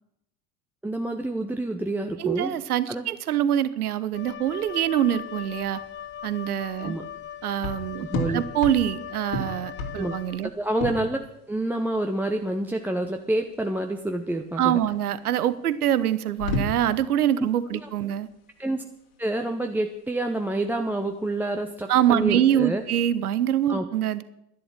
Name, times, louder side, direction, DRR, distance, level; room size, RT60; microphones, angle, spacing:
voice 1, 0.8-2.5 2.9-3.1 6.8-7.0 8.0-8.4 10.0-10.2 10.4-11.2 11.5-14.8 17.7-17.9 18.6-18.8 19.2-22.8 23.7-23.8, right 1 dB, 5° right, 4 dB, 0.9 m, -28 dB
voice 2, 2.2-5.8 6.2-7.0 7.4-10.5 14.6-18.3 21.9-24.2, right 11 dB, 75° right, 16 dB, 0.9 m, -24 dB
Wind instrument woodwind instrument, 4.1-10.7, left 9 dB, 25° left, 0.7 m, -39 dB
sound 1, 4.7-22.9, left 2 dB, 65° left, 2.7 m, -36 dB
11.5 x 11.0 x 7.5 m, 0.81 s
figure-of-eight pair, 80°, 45 cm